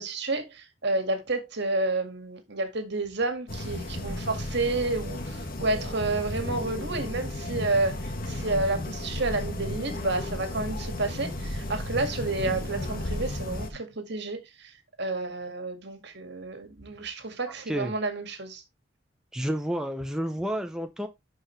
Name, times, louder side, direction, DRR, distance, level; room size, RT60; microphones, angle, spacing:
voice 1, 0.0-14.7 15.0-18.6, right 2 dB, 60° right, 1.9 m, -30 dB
sound 1, 3.5-13.7, left 1 dB, 50° left, 1.3 m, -34 dB
voice 2, 19.3-21.1, equal, 5° right, 0.6 m, -30 dB
11.0 x 4.8 x 3.2 m
head